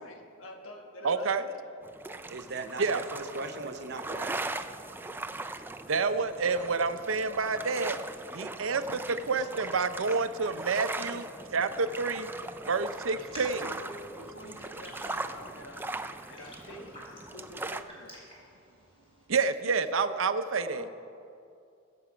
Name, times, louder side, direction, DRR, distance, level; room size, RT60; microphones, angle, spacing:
voice 1, 0.0-1.6 8.8-9.4 13.6-15.9 16.3-18.2 20.7-20.9, left 1 dB, 80° left, 2 dB, 1.5 m, -47 dB
voice 2, 1.0-1.4 2.8-3.0 5.9-8.0 8.3-8.8 9.3-12.3 12.7-13.7 19.3-20.9, right 4 dB, 75° right, 10 dB, 0.7 m, -28 dB
sound 1, 1.8-17.8, right 2 dB, 10° right, 0.4 m, -40 dB
voice 3, 2.3-4.4 11.0-11.3 12.5-12.7, right 3 dB, 55° right, 7 dB, 1.0 m, -39 dB
Raindrop, 13.0-19.3, equal, 30° left, 3.8 m, -51 dB
21.5 x 7.8 x 5.1 m, 2.5 s
head